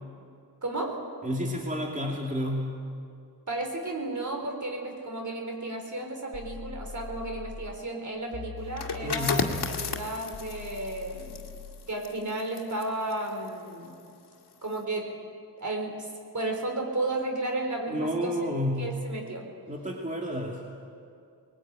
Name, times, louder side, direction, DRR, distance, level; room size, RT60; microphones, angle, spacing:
voice 1, 0.6-1.0 3.5-11.4 11.9-13.9 14.6-15.1 15.6-16.1 16.3-18.3 18.8-19.5, right 2 dB, 45° right, 2 dB, 4.2 m, -33 dB
voice 2, 1.2-2.8 9.0-9.4 17.9-18.9 19.7-20.7, equal, 20° right, -1 dB, 2.7 m, -30 dB
sound 1, 6.3-7.8 8.3-11.8, left 5 dB, 50° left, 2.5 m, -42 dB
sound 2, 8.7-14.2 14.5-14.8, left 5 dB, 70° left, 2.0 m, -35 dB
21.0 x 19.0 x 9.1 m, 2.4 s
wide cardioid pair, 80°, 40 cm